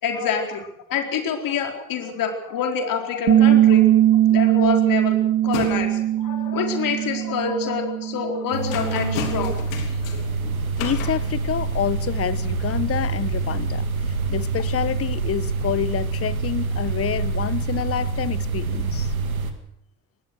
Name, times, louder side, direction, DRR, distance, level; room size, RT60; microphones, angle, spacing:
voice 1, 0.0-3.9 4.3-5.2 5.4-9.9, left 6 dB, 55° left, 4.5 m, -27 dB
Bass guitar, 3.3-9.5, right 12 dB, 40° right, 1.4 m, -20 dB
sound 1, 3.4-3.7 4.0-4.5 4.9-6.0 6.6-7.4 7.8-11.9, left 8 dB, 75° left, 3.6 m, -35 dB
sound 2, 8.5-19.5, right 4 dB, 90° right, 2.1 m, -26 dB
voice 2, 10.8-19.1, left 9 dB, 35° left, 1.2 m, -28 dB
25.0 x 19.5 x 6.4 m
hypercardioid pair, 60°, 41 cm